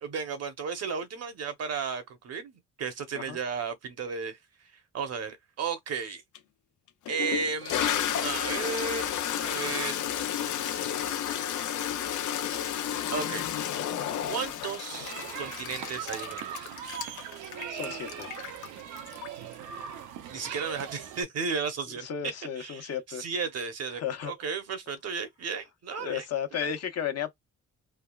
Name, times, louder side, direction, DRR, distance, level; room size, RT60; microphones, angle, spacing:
voice 1, 0.0-4.4 4.9-6.2 7.1-10.1 13.1-13.5 14.3-16.6 20.3-22.1 22.6-26.2 26.5-26.7, right 5 dB, 55° right, 0.9 m, -34 dB
Toilet flush, 6.3-6.4 7.1-19.5, left 10 dB, 75° left, 0.7 m, -32 dB
sound 1, 14.9-21.2, right 8 dB, 90° right, 0.7 m, -40 dB
voice 2, 17.5-18.3 22.0-23.2 24.0-24.3 26.0-27.3, left 8 dB, 55° left, 1.0 m, -34 dB
3.3 x 2.3 x 2.3 m
cardioid pair, 90°, 30 cm